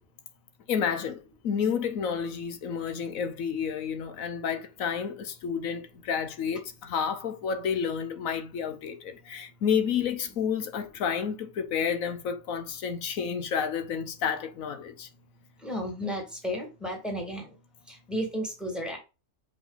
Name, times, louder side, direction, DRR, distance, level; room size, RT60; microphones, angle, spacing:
voice 1, 0.7-15.1, left 7 dB, 85° left, 1.3 m, -30 dB
voice 2, 15.6-17.5 17.9-19.0, equal, ahead, 2.0 m, -33 dB
5.9 x 5.0 x 3.9 m
omnidirectional pair, 1.4 m